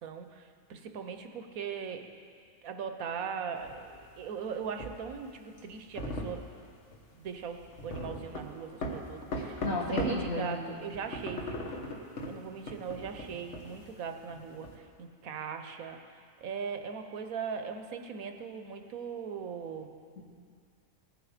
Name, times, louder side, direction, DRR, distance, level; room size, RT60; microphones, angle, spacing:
voice 1, 0.0-2.1 2.6-6.4 7.2-11.6 12.3-16.0 16.4-19.9, right 6 dB, 90° right, 6 dB, 1.3 m, -39 dB
sound 1, 3.6-10.3 10.6-14.8, equal, 60° left, 1.5 m, -39 dB
voice 2, 9.6-10.6 20.2-20.3, left 1 dB, 85° left, -3 dB, 2.4 m, -32 dB
19.0 x 8.0 x 5.0 m, 2.2 s
omnidirectional pair, 1.4 m